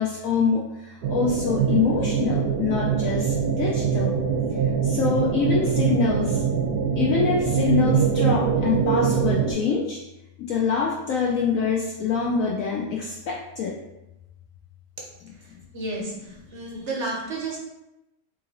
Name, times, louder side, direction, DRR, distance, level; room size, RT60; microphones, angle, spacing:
voice 1, 0.0-4.2 4.8-6.4 7.0-10.0 10.4-13.8 15.2-15.3, left 6 dB, 70° left, -2 dB, 0.8 m, -25 dB
sound 1, 1.0-9.5, right 7 dB, 70° right, 1.2 m, -23 dB
voice 2, 15.7-17.6, right 2 dB, 55° right, -2 dB, 0.8 m, -31 dB
3.8 x 3.0 x 3.7 m, 0.92 s
omnidirectional pair, 1.9 m